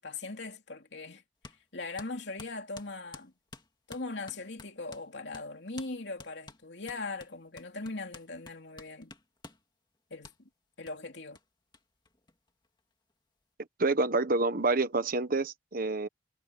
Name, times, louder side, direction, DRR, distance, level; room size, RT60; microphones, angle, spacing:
voice 1, 0.0-3.3 3.9-9.1 10.1-10.5 10.8-11.4, left 3 dB, 70° left, 3.2 m, -40 dB
sound 1, 1.4-1.6 2.0-5.1 5.3-5.5 5.8-5.9 6.2-9.6 10.2-10.4 10.9-11.0 11.4-11.5 11.7-11.8 12.1-12.8, left 3 dB, 25° left, 2.4 m, -50 dB
voice 2, 13.8-16.1, right 3 dB, 50° right, 1.3 m, -28 dB
head